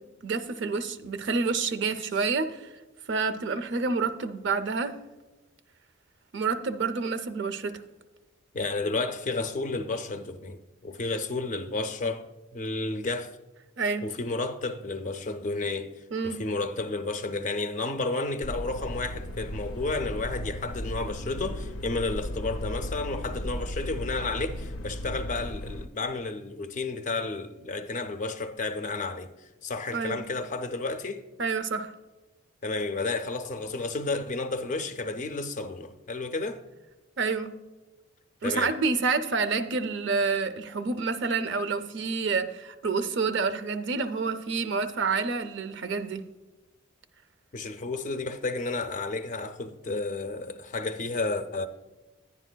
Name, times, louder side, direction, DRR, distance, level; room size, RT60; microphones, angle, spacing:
voice 1, 0.2-2.6 3.1-5.0 6.3-7.7 13.8-14.1 16.1-16.4 29.9-30.2 31.4-31.9 37.2-37.5 38.4-46.2, right 4 dB, 60° right, 0.5 m, -28 dB
voice 2, 8.5-13.4 14.0-31.2 32.6-36.6 38.4-38.8 47.5-51.7, left 3 dB, 35° left, 0.4 m, -32 dB
sound 1, 18.4-25.9, left 1 dB, 90° left, 0.5 m, -35 dB
10.5 x 9.8 x 2.2 m
head